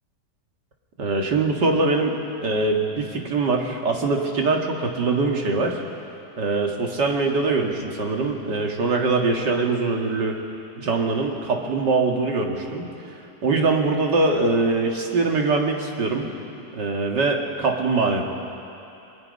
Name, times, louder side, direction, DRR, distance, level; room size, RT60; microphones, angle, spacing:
voice 1, 1.0-5.8 6.4-10.4 10.8-12.9 13.4-16.3 16.7-18.2, right 3 dB, 75° right, 1 dB, 2.5 m, -23 dB
28.5 x 21.0 x 5.4 m, 2.7 s
omnidirectional pair, 1.8 m